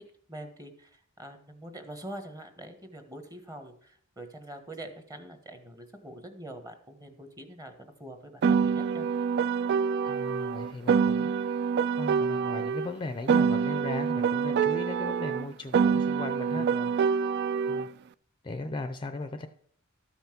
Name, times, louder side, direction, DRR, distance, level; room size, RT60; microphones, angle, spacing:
voice 1, 0.3-7.7 8.0-9.1 16.5-16.9, right 1 dB, 15° right, 7 dB, 1.3 m, -44 dB
Piano, 8.4-12.9 13.3-17.9, right 6 dB, 55° right, 0.3 m, -26 dB
voice 2, 10.0-11.4 12.0-16.7 17.7-17.9 18.4-19.5, left 2 dB, 25° left, 9 dB, 0.5 m, -37 dB
13.0 x 5.7 x 5.9 m, 0.62 s
head